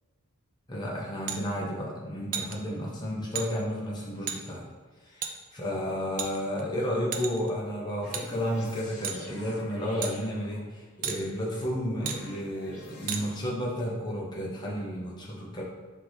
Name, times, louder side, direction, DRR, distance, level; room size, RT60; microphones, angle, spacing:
voice 1, 0.7-4.6 5.0-15.6, equal, 20° left, -4 dB, 0.6 m, -32 dB
sound 1, 1.3-1.4 2.3-2.5 3.3-3.5 4.3-4.4 5.2-5.3 6.2-6.6 7.1-7.5 8.1-8.2 9.0-9.2 10.0-10.1 11.0-11.2 12.0-12.2 13.1-13.2, right 7 dB, 40° right, 0.3 m, -32 dB
sound 2, 8.0-10.9 11.6-13.4, left 1 dB, 85° left, 0.9 m, -47 dB
5.6 x 2.6 x 3.1 m, 1.4 s
head